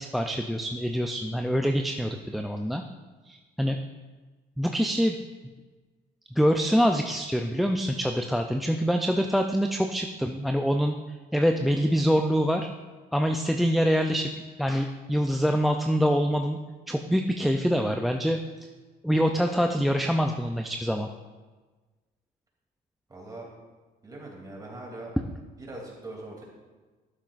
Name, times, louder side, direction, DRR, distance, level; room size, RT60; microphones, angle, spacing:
voice 1, 0.0-2.8 3.3-3.8 4.6-5.2 6.3-10.9 11.3-12.7 13.1-14.3 14.6-16.6 16.9-18.4 19.0-21.1, equal, ahead, 5 dB, 0.4 m, -25 dB
voice 2, 23.1-23.5 24.0-25.1 25.6-26.4, right 2 dB, 20° right, -2 dB, 2.8 m, -41 dB
12.0 x 9.0 x 2.5 m, 1.3 s
cardioid pair, 110°, 17 cm